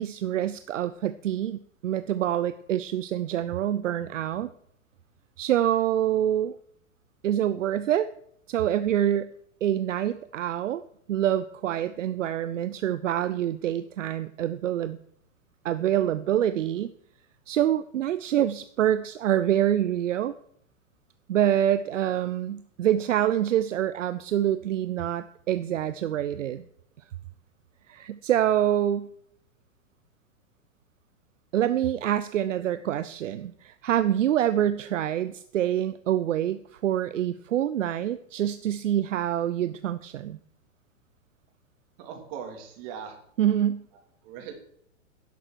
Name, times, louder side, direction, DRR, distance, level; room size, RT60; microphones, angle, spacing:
voice 1, 0.0-4.5 5.4-6.5 7.2-8.1 8.5-9.3 9.6-10.8 11.1-15.0 15.6-16.9 17.5-20.3 21.3-26.6 27.9-29.1 31.5-40.4 43.4-43.9, right 11 dB, 75° right, 12 dB, 0.7 m, -26 dB
voice 2, 42.0-43.2 44.2-44.5, right 7 dB, 45° right, 3 dB, 3.3 m, -39 dB
11.0 x 7.6 x 6.2 m, 0.67 s
hypercardioid pair, 115°, 38 cm